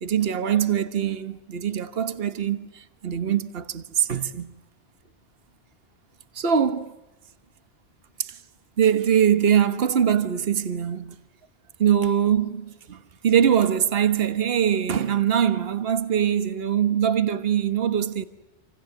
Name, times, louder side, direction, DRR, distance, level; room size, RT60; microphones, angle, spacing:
voice 1, 0.0-4.5 6.3-7.0 8.2-8.4 8.8-11.2 11.8-18.2, right 8 dB, 55° right, 1.4 m, -23 dB
28.0 x 26.5 x 7.7 m
omnidirectional pair, 1.2 m